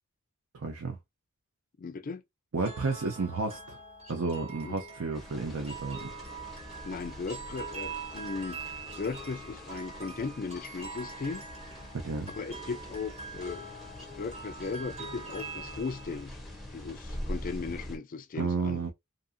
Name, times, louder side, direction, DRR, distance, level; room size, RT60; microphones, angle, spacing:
voice 1, 0.5-1.0 2.5-3.8 4.1-6.1 11.9-12.3 18.4-18.9, right 4 dB, 75° right, 0.6 m, -32 dB
voice 2, 1.8-2.2 4.6-4.7 6.8-11.5 12.3-13.6 14.1-16.4 16.7-18.8, left 4 dB, 40° left, 0.3 m, -37 dB
sound 1, 2.6-16.2, right 4 dB, 30° right, 0.8 m, -44 dB
sound 2, 5.1-18.0, left 1 dB, ahead, 0.7 m, -44 dB
2.6 x 2.5 x 2.5 m
head